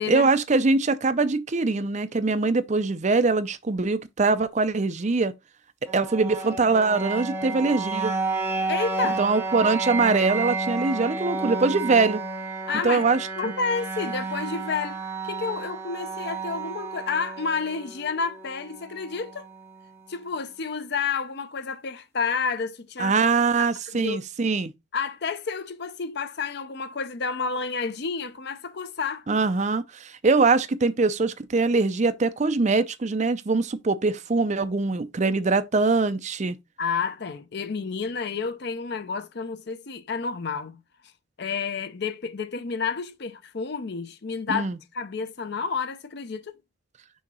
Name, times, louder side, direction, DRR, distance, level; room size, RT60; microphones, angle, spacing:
voice 1, 0.1-5.3 5.9-8.1 9.2-12.2 12.8-13.5 23.0-24.7 29.3-36.6 44.5-44.8, right 3 dB, 35° right, 0.5 m, -23 dB
sound 1, 5.9-19.8, right 3 dB, 10° right, 1.1 m, -31 dB
voice 2, 8.7-9.2 12.7-13.0 13.4-19.5 20.1-23.1 23.9-24.2 24.9-29.2 36.8-40.8 41.4-46.6, left 5 dB, 55° left, 0.6 m, -30 dB
6.3 x 2.8 x 5.4 m
head